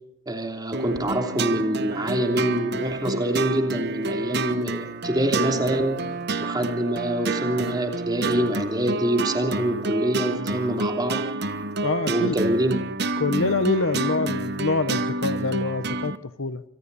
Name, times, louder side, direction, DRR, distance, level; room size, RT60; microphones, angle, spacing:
voice 1, 0.3-6.0 6.4-11.2 12.1-12.7, right 1 dB, 20° right, 3.2 m, -25 dB
sound 1, 0.7-16.2, right 2 dB, 55° right, 1.3 m, -29 dB
voice 2, 11.8-12.4 13.2-16.6, left 3 dB, 70° left, 1.0 m, -25 dB
27.0 x 24.0 x 4.2 m
head